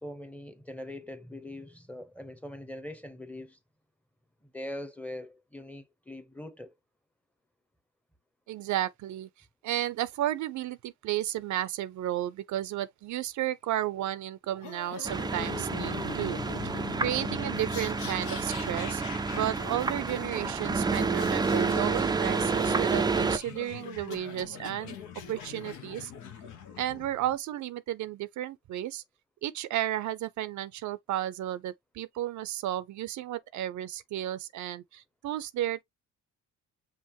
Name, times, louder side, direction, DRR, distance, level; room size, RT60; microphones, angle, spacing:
voice 1, 0.0-3.6 4.4-6.7, left 1 dB, 5° left, 0.8 m, -42 dB
voice 2, 8.5-9.3 9.6-19.0 19.3-25.0 25.3-26.1 26.8-29.0 29.4-35.8, right 13 dB, 70° right, 0.5 m, -33 dB
sound 1, 14.6-27.3, left 7 dB, 90° left, 1.1 m, -42 dB
sound 2, 15.0-23.4, right 4 dB, 15° right, 0.3 m, -29 dB
5.7 x 2.5 x 2.9 m
cardioid pair, 90°, 30 cm